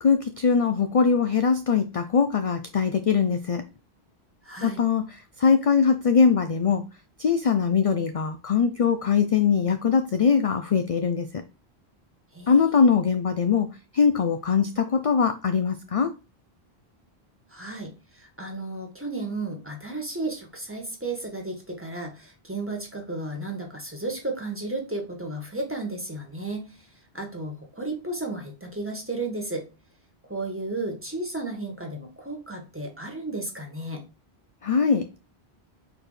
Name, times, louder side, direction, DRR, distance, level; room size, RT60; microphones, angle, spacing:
voice 1, 0.0-3.6 4.6-6.8 7.2-11.4 12.5-16.1 34.6-35.2, left 6 dB, 45° left, 8 dB, 0.4 m, -22 dB
voice 2, 4.4-4.8 12.3-12.8 17.5-26.8 27.1-29.6 30.3-34.0, right 2 dB, 10° right, 1 dB, 1.5 m, -33 dB
4.4 x 4.3 x 4.9 m, 0.30 s
omnidirectional pair, 1.1 m